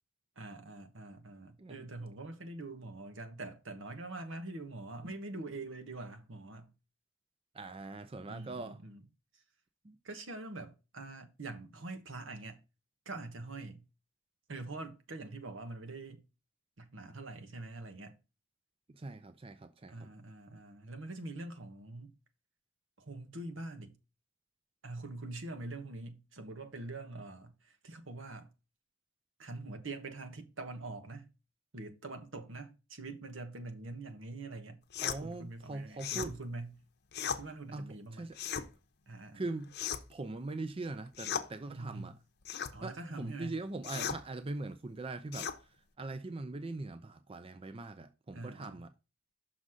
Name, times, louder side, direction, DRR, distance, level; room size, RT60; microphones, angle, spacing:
voice 1, 0.4-6.7 8.3-9.0 10.0-12.6 13.0-13.8 14.5-16.2 16.8-18.2 19.9-22.1 23.0-24.0 24.8-28.5 29.4-31.3 31.7-34.8 35.2-36.8 37.4-38.3 39.1-39.4 41.7-42.2 42.7-43.6 48.3-48.8, right 2 dB, 75° right, 1.2 m, -44 dB
voice 2, 7.5-8.8 9.8-10.0 19.0-20.1 35.0-36.3 37.7-37.9 38.1-38.4 39.3-39.7 40.1-42.1 42.8-45.5 46.0-48.9, right 2 dB, 30° right, 0.4 m, -41 dB
sound 1, 34.9-35.2 36.0-36.3 37.1-37.4 38.3-38.7 39.7-40.2 41.1-41.5 42.4-42.7 43.8-44.2 45.3-45.6, left 8 dB, 55° left, 0.7 m, -36 dB
6.2 x 4.0 x 6.2 m
head